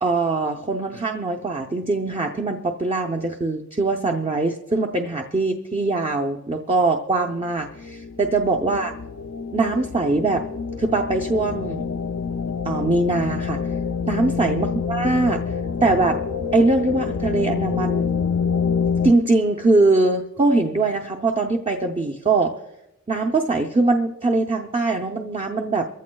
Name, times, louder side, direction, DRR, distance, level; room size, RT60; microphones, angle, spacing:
voice 1, 0.0-8.9 9.5-10.4 10.8-11.9 12.6-13.6 14.1-15.4 15.8-16.2 16.5-18.1 19.0-22.5 23.1-25.9, right 3 dB, 25° right, 3 dB, 0.6 m, -22 dB
sound 1, 7.8-19.1, left 5 dB, 75° left, 0.4 m, -27 dB
23.5 x 15.0 x 2.2 m, 0.92 s
head